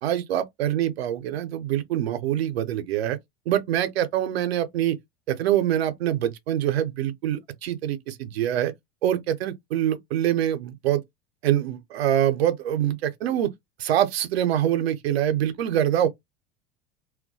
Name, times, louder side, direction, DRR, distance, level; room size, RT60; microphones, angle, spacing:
voice 1, 0.0-3.2 3.5-5.0 5.3-8.7 9.0-11.0 11.4-13.5 13.8-16.1, right 11 dB, 75° right, 0.5 m, -24 dB
2.2 x 2.2 x 2.6 m
hypercardioid pair, 80°, 31 cm